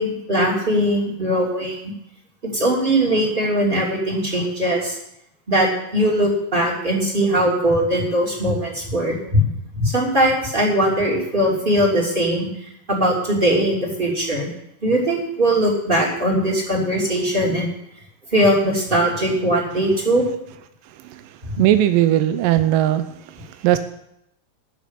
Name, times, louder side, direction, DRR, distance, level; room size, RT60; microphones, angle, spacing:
voice 1, 0.0-1.7 2.4-5.0 5.5-9.4 9.7-12.5 12.9-14.5 14.8-17.7 18.3-20.2, right 1 dB, 15° right, -3 dB, 2.6 m, -20 dB
voice 2, 21.6-23.0 23.4-23.8, right 13 dB, 80° right, 9 dB, 2.1 m, -18 dB
13.0 x 6.4 x 8.2 m, 0.77 s
omnidirectional pair, 4.4 m